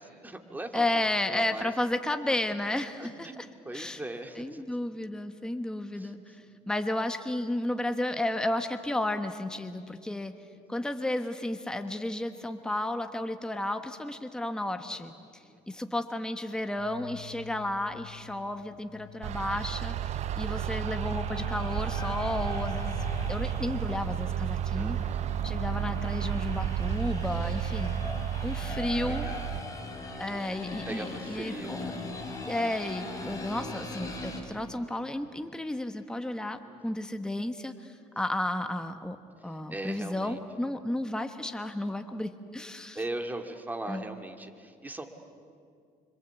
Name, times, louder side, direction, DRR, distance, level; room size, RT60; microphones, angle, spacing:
voice 1, 0.0-1.7 2.3-2.4 3.0-4.6 5.9-6.5 15.4-15.9 24.7-25.2 28.5-29.5 30.8-31.8 36.6-37.1 39.4-40.4 42.9-45.1, right 2 dB, 10° right, 4 dB, 2.1 m, -40 dB
voice 2, 0.7-3.4 3.7-4.0 4.4-6.4 6.7-10.3 10.7-25.0 25.4-27.9 28.4-29.3 30.2-31.8 32.5-39.2 39.4-43.0 43.9-44.0, left 1 dB, 5° left, 7 dB, 1.2 m, -33 dB
sound 1, 16.8-28.3, left 12 dB, 75° left, 0.9 m, -45 dB
sound 2, 19.2-29.6, right 11 dB, 50° right, 0.6 m, -32 dB
sound 3, 20.3-34.4, left 2 dB, 20° left, 5.1 m, -41 dB
26.0 x 25.5 x 8.3 m, 2.3 s
cardioid pair, 115°, 15 cm